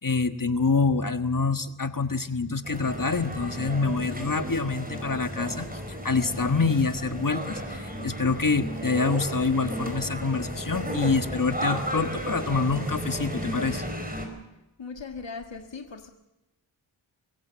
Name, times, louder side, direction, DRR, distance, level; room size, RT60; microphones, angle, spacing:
voice 1, 0.0-13.8, left 4 dB, 40° left, 8 dB, 1.5 m, -26 dB
sound 1, 2.6-14.3, equal, 20° right, 4.8 m, -34 dB
voice 2, 14.8-16.1, left 4 dB, 65° left, 5 dB, 1.6 m, -38 dB
23.0 x 16.0 x 7.5 m, 0.95 s
wide cardioid pair, 45°, 49 cm